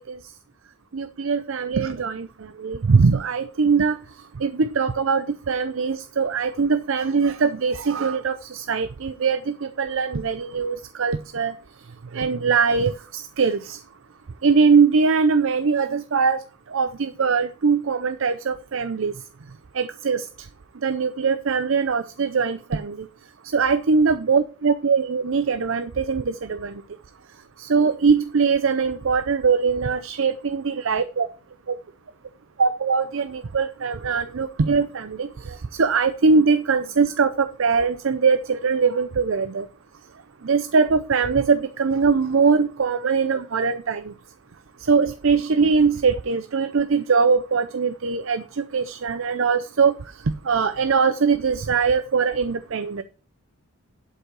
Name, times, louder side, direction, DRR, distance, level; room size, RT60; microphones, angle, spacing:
voice 1, 0.9-2.3 2.6-4.0 4.4-11.5 12.1-13.8 14.4-16.4 16.7-19.1 19.8-20.2 20.8-23.0 23.5-26.7 27.6-31.3 32.6-39.7 40.4-44.0 44.9-49.9 50.5-53.0, right 5 dB, 65° right, 0.5 m, -21 dB
11.5 x 5.6 x 4.8 m
head